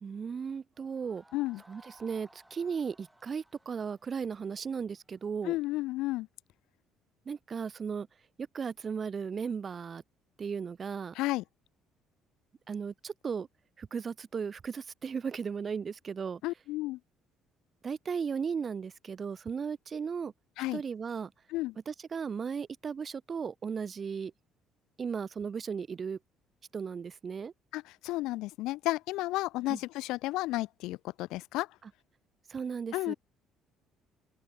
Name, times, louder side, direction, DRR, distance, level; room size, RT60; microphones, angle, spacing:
voice 1, 0.0-1.2 1.7-5.6 7.3-8.1 8.5-10.0 10.4-11.1 12.7-13.5 13.8-16.4 17.8-20.3 20.7-21.3 21.9-24.3 25.0-26.2 26.7-27.5 29.7-29.8 31.8-31.9 32.5-33.1, right 6 dB, 30° right, 0.3 m, -36 dB
sound 1, 0.7-5.5, right 1 dB, 5° right, 2.7 m, -60 dB
voice 2, 5.4-6.3 11.2-11.4 16.4-17.0 20.6-20.8 21.5-21.7 27.7-31.7 32.9-33.1, left 18 dB, 85° left, 0.6 m, -32 dB
open air
cardioid pair, 145°, 0 cm